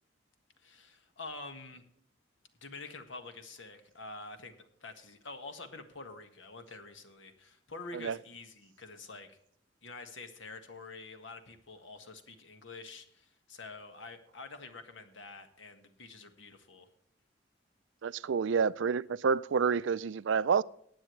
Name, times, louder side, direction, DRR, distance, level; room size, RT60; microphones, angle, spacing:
voice 1, 0.6-1.8 2.6-4.5 4.8-9.4 9.8-16.9, left 3 dB, 80° left, 1.7 m, -47 dB
voice 2, 18.0-20.6, right 6 dB, 75° right, 0.4 m, -29 dB
19.5 x 8.9 x 3.2 m
head